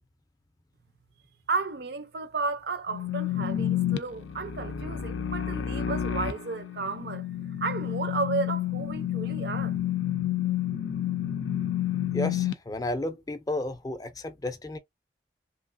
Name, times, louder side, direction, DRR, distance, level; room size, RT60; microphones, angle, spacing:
voice 1, 1.5-7.3 7.6-9.8, right 4 dB, 60° right, 0.5 m, -33 dB
sound 1, 2.9-12.5, left 10 dB, 90° left, 0.4 m, -30 dB
voice 2, 12.1-14.8, left 1 dB, 20° left, 0.4 m, -32 dB
3.0 x 2.4 x 2.5 m
head